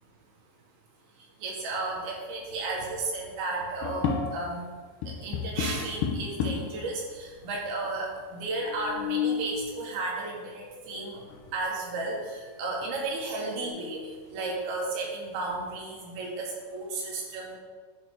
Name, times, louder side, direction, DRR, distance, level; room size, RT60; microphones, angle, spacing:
voice 1, 1.4-4.7 5.2-11.2 11.5-14.0 14.3-17.6, right 2 dB, 80° right, -2 dB, 3.4 m, -33 dB
sound 1, 3.8-4.7 5.0-6.8 7.5-7.6 7.8-7.9 8.6-9.6 11.3-11.4 11.9-12.4 12.8-12.9 13.4-14.3, left 6 dB, 75° left, 2.0 m, -32 dB
sound 2, 8.8-11.1 11.5-12.4 12.6-13.7, left 2 dB, 55° right, 1.8 m, -49 dB
10.5 x 4.7 x 3.7 m, 1.5 s
omnidirectional pair, 4.4 m